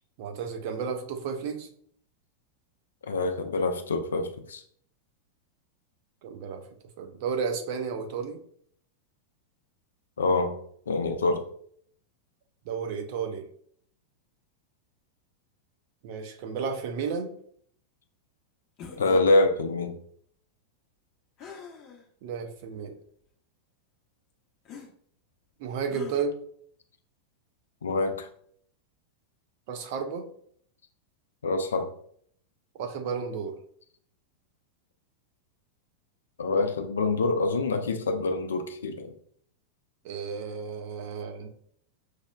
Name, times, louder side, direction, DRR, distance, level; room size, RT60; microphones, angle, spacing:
voice 1, 0.2-1.7 6.2-6.6 7.0-8.4 12.7-13.5 16.0-17.3 22.2-22.9 25.6-26.4 29.7-30.3 32.7-33.5 40.0-41.5, right 6 dB, 50° right, 0.5 m, -32 dB
voice 2, 3.0-4.6 10.2-10.5 10.9-11.4 19.0-20.0 27.8-28.3 31.4-31.9 36.4-39.1, left 3 dB, 70° left, 0.4 m, -26 dB
sound 1, 18.8-19.3 21.4-22.0 22.7-22.8 24.7-24.9 25.9-26.2, left 6 dB, 35° left, 0.7 m, -43 dB
6.3 x 2.1 x 2.3 m
figure-of-eight pair, 90°, 0 cm